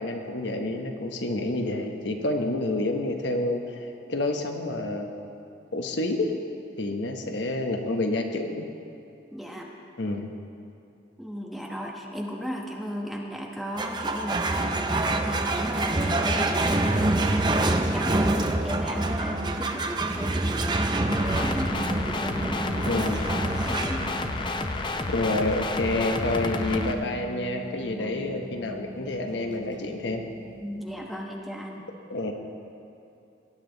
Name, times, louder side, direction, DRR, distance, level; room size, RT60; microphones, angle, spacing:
voice 1, 0.0-5.2 5.7-6.3 6.8-8.7 10.0-10.3 22.9-23.2 25.1-30.2 32.1-32.3, left 2 dB, 80° left, 4 dB, 1.1 m, -28 dB
voice 2, 9.3-9.7 11.2-23.1 23.4-24.1 27.9-28.1 30.6-31.8, equal, ahead, -1 dB, 1.0 m, -36 dB
sound 1, 13.8-30.5, right 2 dB, 25° right, 0.6 m, -27 dB
sound 2, 21.1-26.9, left 2 dB, 25° left, 0.5 m, -30 dB
18.0 x 9.9 x 4.0 m, 2.8 s
head